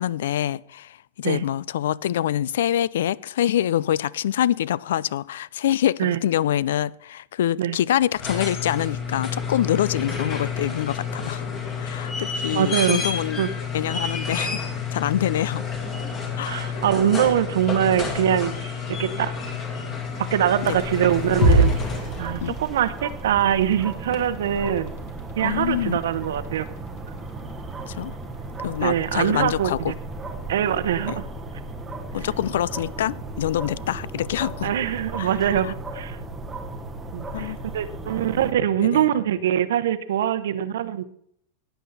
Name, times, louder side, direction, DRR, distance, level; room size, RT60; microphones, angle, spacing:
voice 1, 0.0-11.5 11.8-13.4 13.7-14.6 14.9-15.6 16.4-16.8 20.6-20.8 22.4-22.6 25.4-26.0 27.9-28.1 28.6-29.9 31.1-31.2 32.1-34.7 35.2-35.7 37.3-37.6 38.8-39.1, left 11 dB, 80° left, 0.3 m, -25 dB
sound 1, 8.1-22.4 24.1-24.2, left 5 dB, 25° left, 2.0 m, -30 dB
voice 2, 12.5-13.0 13.4-13.5 16.5-19.3 20.3-21.7 22.2-24.9 25.4-26.7 28.8-29.9 30.5-31.3 34.6-36.2 37.1-41.0, right 10 dB, 80° right, 0.9 m, -23 dB
sound 2, 20.0-38.5, right 3 dB, 10° right, 0.9 m, -37 dB
sound 3, 21.4-39.6, equal, 45° left, 2.8 m, -31 dB
16.0 x 9.2 x 4.1 m
supercardioid pair, 170°, 0 cm